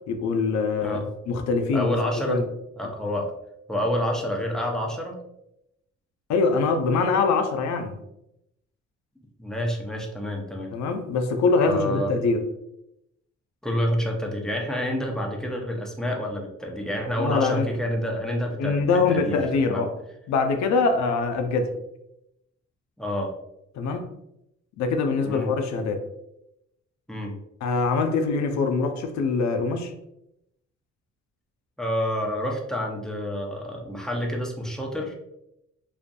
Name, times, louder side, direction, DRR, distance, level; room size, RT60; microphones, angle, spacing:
voice 1, 0.1-1.0 1.3-1.9 2.3-2.4 6.3-8.0 10.7-12.4 17.2-17.7 18.6-19.9 20.3-21.7 23.7-24.0 24.8-26.0 27.6-29.9, left 4 dB, 65° left, 6 dB, 0.5 m, -23 dB
voice 2, 1.7-2.4 2.8-3.3 3.7-5.2 9.4-10.7 11.6-12.1 13.6-18.8 19.1-19.8 23.0-23.3 25.2-25.5 27.1-27.3 31.8-35.1, equal, ahead, -1 dB, 0.5 m, -28 dB
2.5 x 2.4 x 2.2 m, 0.84 s
cardioid pair, 90°, 30 cm